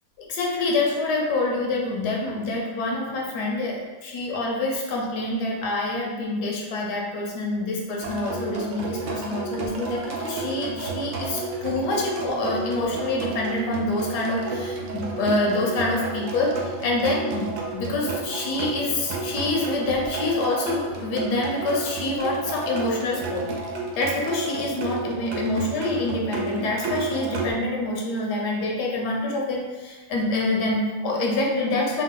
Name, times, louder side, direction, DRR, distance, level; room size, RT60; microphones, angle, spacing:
voice 1, 0.2-23.5 23.9-32.0, left 2 dB, 80° left, -1 dB, 1.3 m, -26 dB
sound 1, 8.0-27.5, right 3 dB, 65° right, 0.8 m, -32 dB
4.0 x 2.2 x 3.7 m, 1.2 s
omnidirectional pair, 1.7 m